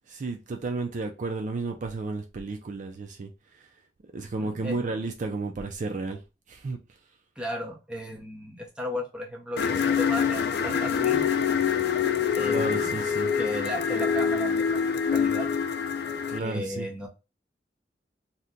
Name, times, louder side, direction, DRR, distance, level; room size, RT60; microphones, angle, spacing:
voice 1, 0.1-3.7 4.1-6.2 6.5-6.8 12.4-13.3 16.3-16.9, right 3 dB, 45° right, 0.4 m, -32 dB
voice 2, 4.2-4.9 7.4-11.3 12.4-12.9 13.3-15.5 16.4-17.1, equal, 5° right, 0.7 m, -35 dB
sound 1, 9.6-16.4, left 7 dB, 60° left, 0.3 m, -25 dB
2.8 x 2.1 x 3.6 m
head